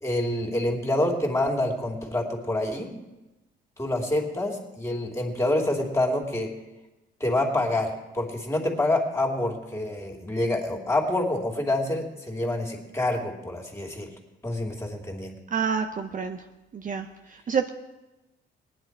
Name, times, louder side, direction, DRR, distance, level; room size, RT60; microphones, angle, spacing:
voice 1, 0.0-2.9 3.8-6.5 7.2-14.1 14.4-15.4, left 1 dB, 15° left, 1 dB, 2.8 m, -27 dB
voice 2, 15.5-16.4 16.7-17.7, right 6 dB, 40° right, 6 dB, 0.8 m, -28 dB
18.5 x 9.9 x 4.6 m, 1.0 s
cardioid pair, 90°, 20 cm